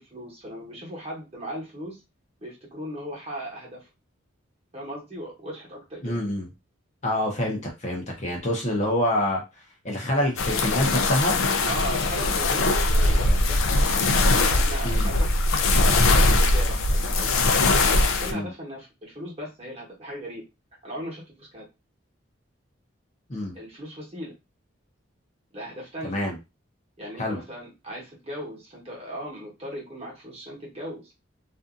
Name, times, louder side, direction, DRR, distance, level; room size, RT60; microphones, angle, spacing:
voice 1, 0.0-2.0 2.4-3.9 4.7-6.2 11.6-14.0 14.4-15.3 15.8-17.3 17.7-20.4 20.8-21.6 23.5-24.3 25.5-26.2 27.0-31.1, equal, 30° right, -2 dB, 1.0 m, -37 dB
voice 2, 6.0-6.5 7.0-9.4 9.8-11.4 14.8-15.1 18.3-18.5 23.3-23.5 26.0-26.4 27.2-27.4, left 1 dB, 35° left, 0 dB, 0.7 m, -26 dB
sound 1, 10.4-18.3, left 2 dB, 90° left, 0.4 m, -21 dB
2.6 x 2.4 x 2.5 m, 0.25 s
head